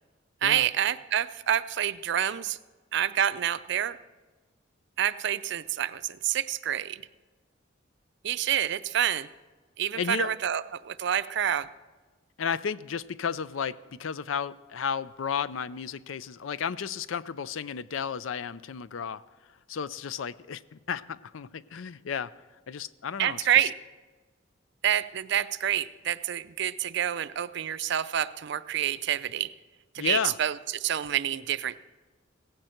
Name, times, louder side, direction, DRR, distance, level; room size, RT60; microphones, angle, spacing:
voice 1, 0.4-2.6 2.9-4.0 5.0-7.0 8.2-9.3 9.8-11.7 23.2-23.7 24.8-29.5 29.9-31.8, right 10 dB, 60° right, 15 dB, 0.5 m, -28 dB
voice 2, 10.0-10.3 12.4-19.2 19.7-22.3 22.7-23.7 30.0-30.4, left 7 dB, 80° left, 17 dB, 0.5 m, -33 dB
17.0 x 15.5 x 4.4 m, 1.3 s
head